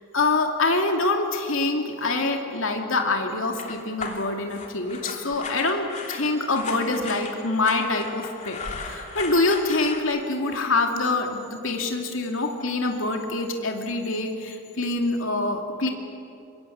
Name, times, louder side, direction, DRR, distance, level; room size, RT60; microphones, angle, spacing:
voice 1, 0.1-15.9, left 2 dB, 70° left, 3 dB, 2.5 m, -25 dB
sound 1, 3.5-10.0, left 4 dB, 35° left, 3.0 m, -36 dB
25.5 x 22.5 x 8.6 m, 2.6 s
head